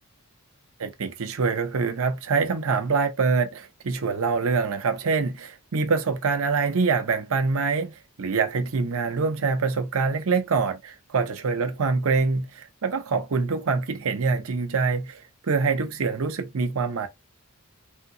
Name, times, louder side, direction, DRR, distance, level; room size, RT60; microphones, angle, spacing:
voice 1, 0.8-17.1, right 4 dB, 65° right, 0.7 m, -25 dB
3.5 x 2.7 x 2.7 m
head